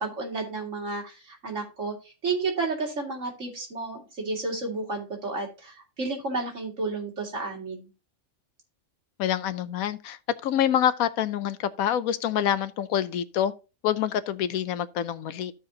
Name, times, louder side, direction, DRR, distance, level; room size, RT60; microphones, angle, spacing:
voice 1, 0.0-1.9 2.2-7.9, right 3 dB, 55° right, 2.4 m, -31 dB
voice 2, 9.2-13.5 13.8-15.5, left 10 dB, 80° left, 1.0 m, -26 dB
14.0 x 4.8 x 2.7 m
omnidirectional pair, 1.5 m